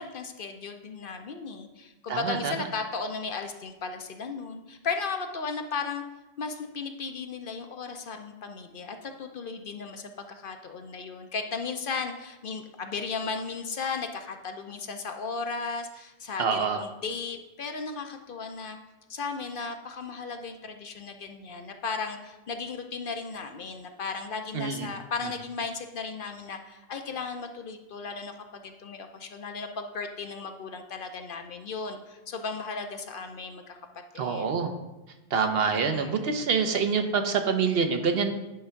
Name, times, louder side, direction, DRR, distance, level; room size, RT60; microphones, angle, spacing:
voice 1, 0.0-6.0 6.4-18.8 19.1-33.8 34.1-34.5 35.7-36.3, left 4 dB, 55° left, 6 dB, 0.7 m, -35 dB
voice 2, 2.1-2.5 16.4-16.8 24.5-24.9 34.2-34.7 35.3-38.3, right 5 dB, 65° right, 6 dB, 0.9 m, -26 dB
9.5 x 3.4 x 5.7 m, 1.0 s
omnidirectional pair, 1.1 m